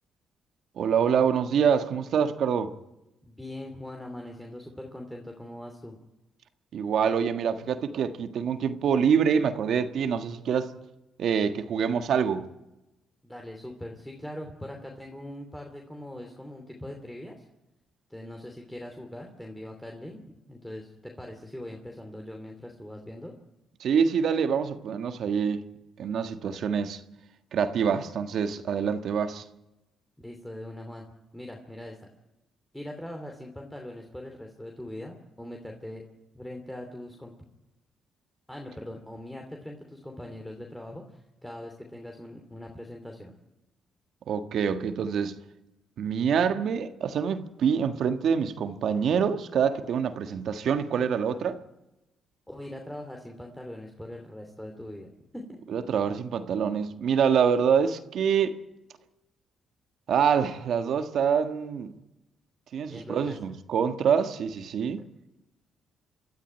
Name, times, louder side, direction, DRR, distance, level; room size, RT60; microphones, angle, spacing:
voice 1, 0.8-2.7 6.7-10.7 11.2-12.4 23.8-25.6 26.0-27.0 27.5-29.4 44.3-45.3 46.0-51.6 55.7-58.6 60.1-61.9 62.7-65.0, right 7 dB, 65° right, 1.5 m, -26 dB
voice 2, 3.3-6.0 13.2-17.4 18.1-20.2 20.5-23.3 30.2-31.0 31.3-32.0 32.7-36.0 36.3-37.3 38.5-43.3 52.5-55.6 62.9-63.4, left 1 dB, 5° left, 2.9 m, -41 dB
25.0 x 13.0 x 9.1 m
cardioid pair, 90°, 0 cm